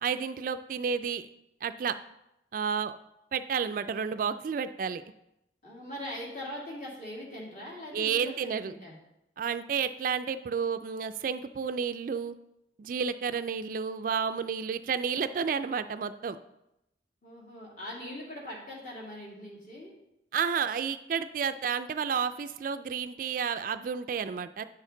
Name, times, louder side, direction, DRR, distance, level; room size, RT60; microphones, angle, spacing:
voice 1, 0.0-1.3 1.6-2.0 2.5-2.9 3.3-5.0 7.9-8.7 9.4-12.4 12.8-16.4 20.3-24.6, right 6 dB, 50° right, 12 dB, 0.3 m, -31 dB
voice 2, 5.6-9.0 17.2-19.9, left 1 dB, 45° left, -3 dB, 2.3 m, -41 dB
8.8 x 6.3 x 3.8 m, 0.84 s
head